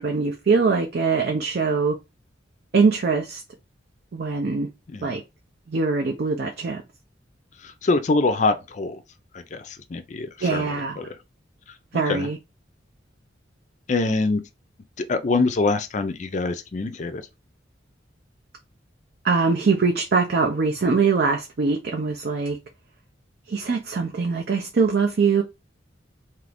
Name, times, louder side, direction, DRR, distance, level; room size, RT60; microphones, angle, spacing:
voice 1, 0.0-2.0 2.7-3.4 4.1-4.7 5.0-5.2 5.7-6.8 10.4-11.0 11.9-12.4 19.2-22.6 23.5-25.4, right 4 dB, 55° right, 0.5 m, -22 dB
voice 2, 7.6-9.0 9.3-11.2 12.1-12.3 13.9-14.4 15.0-17.2, left 3 dB, 40° left, 0.4 m, -24 dB
2.8 x 2.5 x 3.3 m
head